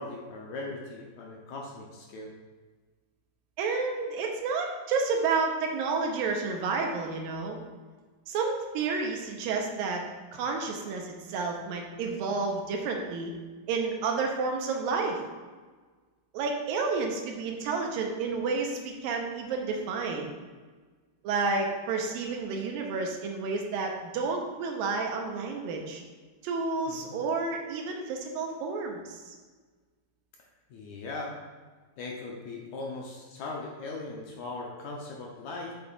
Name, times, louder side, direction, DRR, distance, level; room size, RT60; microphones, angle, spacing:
voice 1, 0.0-2.3 26.9-27.2 30.7-31.4 32.0-35.7, left 2 dB, 70° left, -1 dB, 1.9 m, -39 dB
voice 2, 3.6-7.6 8.3-10.0 10.3-13.3 13.7-15.2 16.3-20.3 21.2-26.0 26.4-29.3, right 4 dB, 90° right, 2 dB, 2.7 m, -30 dB
7.9 x 7.0 x 2.5 m, 1.4 s
omnidirectional pair, 4.0 m